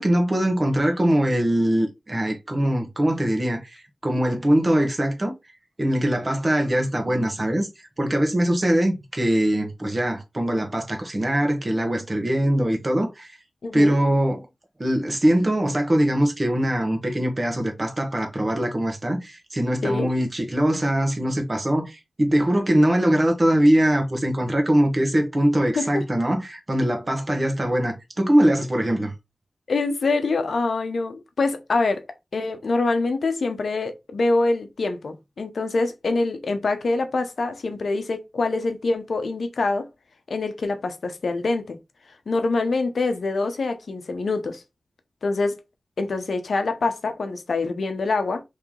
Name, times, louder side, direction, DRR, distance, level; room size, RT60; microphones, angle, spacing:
voice 1, 0.0-5.3 5.8-7.7 8.0-13.4 13.7-14.5 14.8-29.1, right 1 dB, 35° right, 1.1 m, -22 dB
voice 2, 13.6-14.0 19.8-20.1 25.8-26.0 29.7-32.0 32.3-39.9 40.3-41.8 42.3-44.6 45.2-45.6 46.0-48.4, left 3 dB, 85° left, 0.7 m, -25 dB
3.2 x 2.9 x 3.7 m
wide cardioid pair, 70°, 0 cm